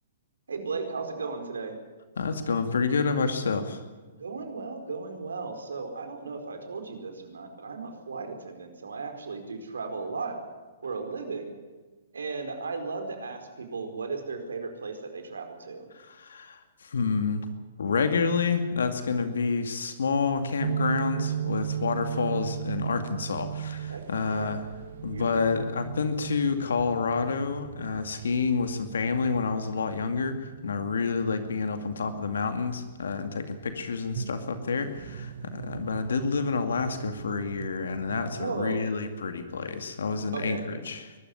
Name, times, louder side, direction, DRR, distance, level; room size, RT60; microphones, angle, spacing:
voice 1, 0.5-1.8 4.2-10.4 10.8-11.5 12.1-15.9 23.9-24.5 25.1-25.6 38.3-38.8 40.3-40.6, right 4 dB, 85° right, 6 dB, 4.6 m, -36 dB
voice 2, 2.2-3.8 15.9-17.5 17.8-24.7 25.0-41.2, left 5 dB, 75° left, 8 dB, 2.3 m, -29 dB
sound 1, 20.6-38.2, right 9 dB, 65° right, 0.8 m, -37 dB
22.5 x 13.0 x 9.7 m, 1.3 s
hypercardioid pair, 125°, 0 cm